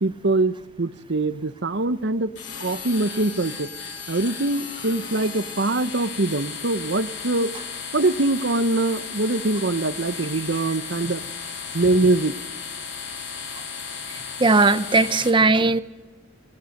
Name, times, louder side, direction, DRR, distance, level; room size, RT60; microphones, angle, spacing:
voice 1, 0.0-2.3 2.6-3.7 4.1-7.5 7.9-11.2 11.7-12.3, right 2 dB, 65° right, 13 dB, 0.9 m, -23 dB
sound 1, 2.3-15.3, left 6 dB, 65° left, 3.9 m, -35 dB
voice 2, 14.4-15.8, right 3 dB, 25° right, 12 dB, 0.9 m, -18 dB
29.0 x 19.0 x 6.6 m, 1.2 s
head